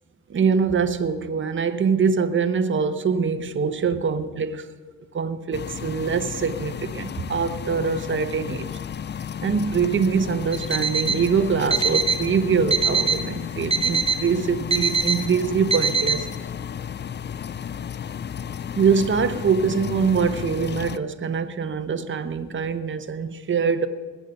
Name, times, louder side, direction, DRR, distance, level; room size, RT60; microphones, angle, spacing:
voice 1, 0.3-4.7 5.1-8.8 9.4-16.3 18.8-23.9, right 6 dB, 40° right, 0.9 m, -23 dB
sound 1, 5.5-21.0, left 8 dB, 35° left, 0.4 m, -33 dB
Alarm, 10.5-11.2 11.7-12.2 12.7-13.2 13.7-14.2 14.7-15.2 15.7-16.2, right 4 dB, 20° right, 1.2 m, -22 dB
20.5 x 8.4 x 5.2 m
cardioid pair, 90°, 30 cm